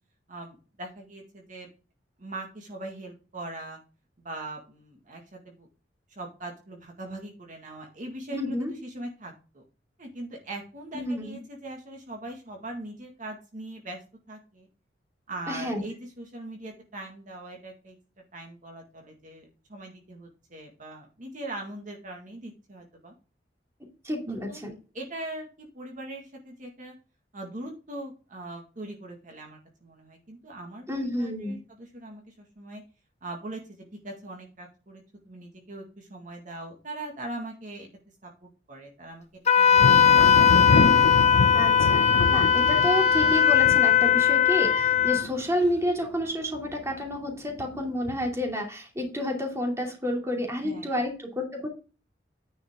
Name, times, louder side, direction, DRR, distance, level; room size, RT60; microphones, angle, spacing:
voice 1, 0.3-1.7 2.2-3.8 4.2-5.7 6.2-9.6 10.0-14.0 14.3-14.7 15.3-18.0 18.3-23.1 24.3-24.6 24.9-26.9 27.3-32.8 33.2-37.9 38.2-39.2 39.6-39.9 50.6-50.9, right 2 dB, 45° right, 1 dB, 1.9 m, -41 dB
voice 2, 8.3-8.7 10.9-11.4 15.5-15.8 24.0-24.7 30.9-31.6 41.6-51.7, left 1 dB, 15° right, 2 dB, 2.7 m, -30 dB
Wind instrument woodwind instrument, 39.5-45.2, left 8 dB, 40° left, 1.0 m, -19 dB
Thunder, 39.7-46.2 46.5-47.1 47.6-48.4, left 3 dB, 90° left, 0.8 m, -28 dB
10.0 x 5.5 x 3.7 m, 0.34 s
head